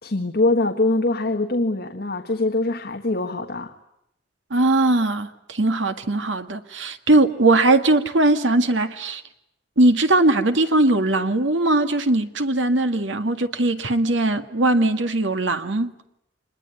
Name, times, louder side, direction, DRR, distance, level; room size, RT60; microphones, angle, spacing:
voice 1, 0.0-3.7, left 2 dB, 55° left, 5 dB, 1.6 m, -23 dB
voice 2, 4.5-9.2 9.8-15.9, right 2 dB, 80° right, 8 dB, 1.9 m, -20 dB
26.5 x 21.5 x 9.9 m, 0.81 s
head